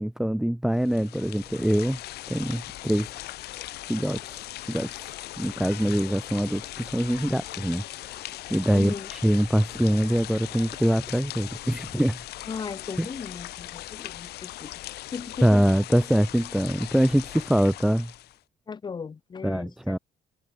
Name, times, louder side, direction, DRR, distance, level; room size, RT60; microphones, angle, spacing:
voice 1, 0.0-2.0 2.3-3.1 3.9-12.2 13.0-13.1 15.4-18.1 19.4-20.0, right 1 dB, ahead, 0.6 m, -24 dB
sound 1, 0.7-18.4, left 16 dB, 70° left, 1.1 m, -39 dB
voice 2, 8.7-9.1 12.5-14.7 15.1-15.5 18.7-20.0, left 5 dB, 25° left, 1.0 m, -37 dB
cardioid pair, 110°, 17 cm